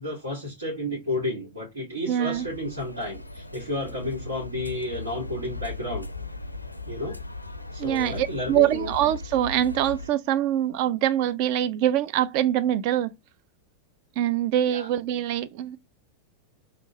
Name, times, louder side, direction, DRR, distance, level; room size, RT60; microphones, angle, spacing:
voice 1, 0.0-6.1 6.9-7.2 7.7-8.9 14.7-14.9, left 1 dB, 75° right, 2.1 m, -32 dB
voice 2, 2.1-2.5 7.8-13.1 14.2-15.8, right 11 dB, 45° right, 0.4 m, -24 dB
sound 1, 2.3-10.1, left 3 dB, 85° left, 0.4 m, -38 dB
3.7 x 3.6 x 2.7 m
figure-of-eight pair, 90°, 0 cm